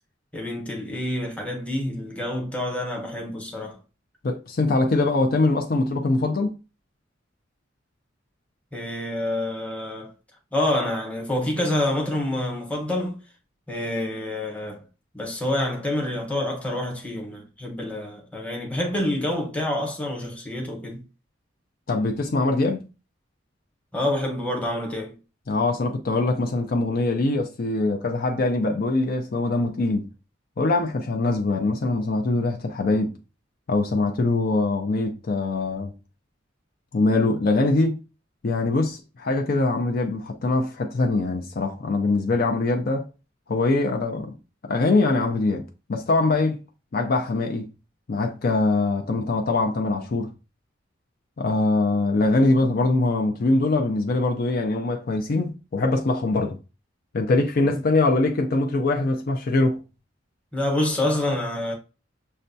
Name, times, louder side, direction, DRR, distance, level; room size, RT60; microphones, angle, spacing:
voice 1, 0.3-3.8 8.7-10.1 10.5-13.2 13.7-14.8 15.1-21.0 23.9-25.2 49.9-50.0 60.5-61.7, left 1 dB, 5° left, 0.9 m, -27 dB
voice 2, 4.2-6.6 21.9-22.8 25.5-30.1 30.6-33.2 33.7-35.9 36.9-38.0 38.4-43.1 43.5-44.3 44.6-45.6 45.9-46.6 46.9-47.7 48.1-50.3 51.4-56.6 57.1-59.8, left 2 dB, 50° left, 0.5 m, -23 dB
6.3 x 2.2 x 2.6 m
head